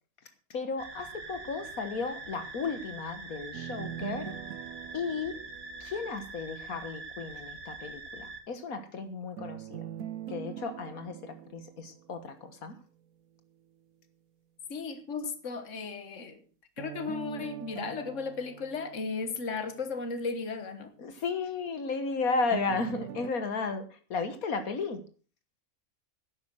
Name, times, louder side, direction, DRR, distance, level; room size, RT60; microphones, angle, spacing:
voice 1, 0.5-4.3 4.9-5.4 5.8-9.9 10.3-12.8 21.0-25.0, left 4 dB, 80° left, 8 dB, 1.8 m, -34 dB
sound 1, 0.8-8.4, right 3 dB, 55° right, 2.3 m, -44 dB
sound 2, 3.5-6.6 9.4-12.6 16.8-19.9 22.5-23.3, right 10 dB, 85° right, 1.3 m, -43 dB
voice 2, 14.7-16.4 16.8-20.9, left 4 dB, 60° left, 9 dB, 1.8 m, -35 dB
11.5 x 9.8 x 6.2 m, 0.39 s
omnidirectional pair, 1.5 m